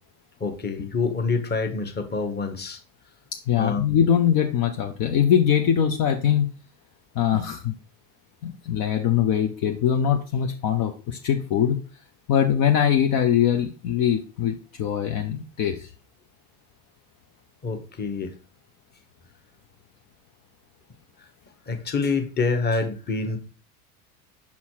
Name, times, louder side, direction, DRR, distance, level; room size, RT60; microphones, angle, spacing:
voice 1, 0.4-2.8 3.6-3.8 17.6-18.4 21.7-23.4, left 4 dB, 20° left, 6 dB, 1.2 m, -26 dB
voice 2, 3.5-6.5 7.2-7.7 8.4-11.8 12.3-15.9, left 9 dB, 45° left, 5 dB, 0.8 m, -22 dB
5.8 x 4.1 x 4.6 m, 0.36 s
hypercardioid pair, 90°, 46 cm